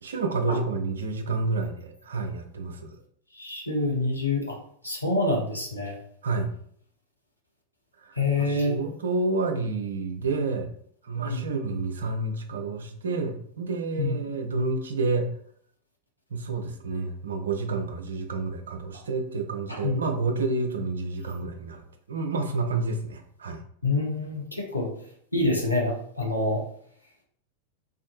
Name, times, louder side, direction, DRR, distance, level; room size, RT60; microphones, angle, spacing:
voice 1, 0.0-3.0 6.2-6.5 8.0-10.7 11.0-15.3 16.3-21.8 22.1-23.6, right 3 dB, 65° right, 5 dB, 0.4 m, -29 dB
voice 2, 3.4-4.5 4.8-6.0 8.2-8.8 11.2-11.4 14.0-14.1 19.7-20.0 23.8-24.9 25.3-26.6, left 2 dB, 85° left, -2 dB, 0.6 m, -26 dB
2.5 x 2.5 x 2.5 m, 0.64 s
figure-of-eight pair, 90°, 0 cm